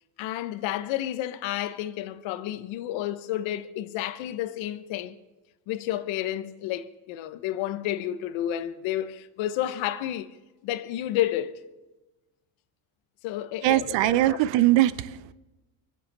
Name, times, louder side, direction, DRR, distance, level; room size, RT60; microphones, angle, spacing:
voice 1, 0.2-5.1 5.7-10.3 10.6-11.6 13.2-14.4, left 12 dB, 70° left, 1.1 m, -31 dB
voice 2, 13.6-15.3, right 16 dB, 65° right, 0.9 m, -22 dB
23.5 x 7.9 x 6.7 m
supercardioid pair, 100°, 48 cm